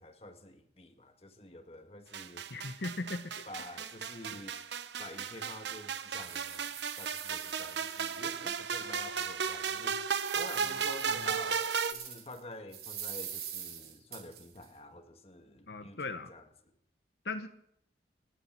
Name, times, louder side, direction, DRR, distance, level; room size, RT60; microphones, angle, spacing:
voice 1, 0.0-2.5 3.5-4.6 5.0-10.0 10.4-16.7, left 1 dB, 35° left, 6 dB, 1.6 m, -48 dB
sound 1, 2.1-11.9, right 6 dB, 80° right, 0.9 m, -35 dB
voice 2, 2.5-3.4 4.3-4.4 10.6-10.8 11.1-11.3 15.7-16.3 17.2-17.5, left 3 dB, 70° left, 8 dB, 0.9 m, -39 dB
sound 2, 4.6-4.7 5.2-5.3 5.8-8.6 9.1-9.2 9.7-12.4 12.7-14.7, right 9 dB, 60° right, 3.0 m, -45 dB
29.0 x 10.0 x 4.5 m, 0.74 s
head